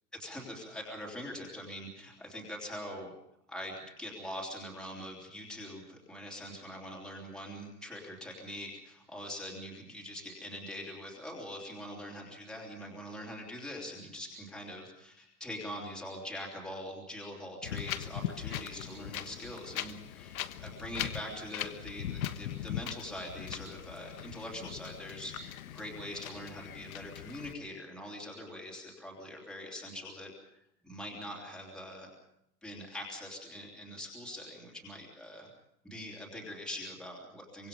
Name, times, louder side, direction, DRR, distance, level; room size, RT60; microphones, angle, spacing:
voice 1, 0.1-3.1 3.5-32.1 32.6-35.5 35.8-37.7, left 1 dB, ahead, -2 dB, 3.2 m, -43 dB
Wind, 17.6-27.5, left 11 dB, 60° left, 1.4 m, -40 dB
25.0 x 23.5 x 5.4 m, 0.78 s
supercardioid pair, 175°, 46 cm